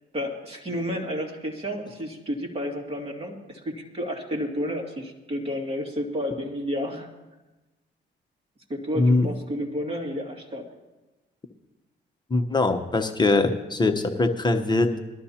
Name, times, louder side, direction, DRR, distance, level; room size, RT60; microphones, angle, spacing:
voice 1, 0.1-7.1 8.7-10.7, equal, 30° right, 0 dB, 2.3 m, -31 dB
voice 2, 9.0-9.3 12.3-15.0, left 2 dB, 20° left, 6 dB, 1.0 m, -22 dB
21.0 x 12.5 x 2.9 m, 1.1 s
cardioid pair, 90°, 20 cm